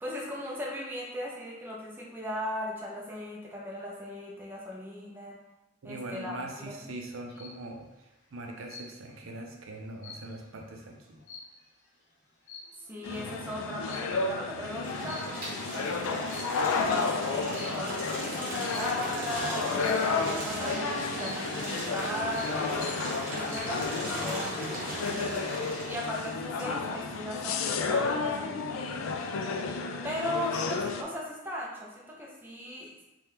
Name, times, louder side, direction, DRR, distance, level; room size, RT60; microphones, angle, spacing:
voice 1, 0.0-5.4 5.8-6.9 12.8-16.4 16.9-22.7 23.2-25.6 25.9-28.8 30.0-33.0, left 1 dB, 10° right, -3 dB, 0.5 m, -38 dB
voice 2, 5.8-11.2, right 2 dB, 85° right, 2 dB, 0.5 m, -42 dB
sound 1, 7.0-7.6 8.7-9.2 9.6-11.9 12.4-12.9 13.9-14.3 15.1-15.7 16.1-16.8 17.5-17.9 18.7-19.1 19.8-20.2 21.2-21.7 22.1-22.2 22.3-22.9 23.3-23.8, left 3 dB, 65° left, 0.7 m, -47 dB
sound 2, 13.0-31.0, left 4 dB, 90° left, 0.3 m, -32 dB
sound 3, 14.7-26.3, right 1 dB, 45° right, 1.0 m, -38 dB
2.8 x 2.2 x 3.4 m, 1.0 s
head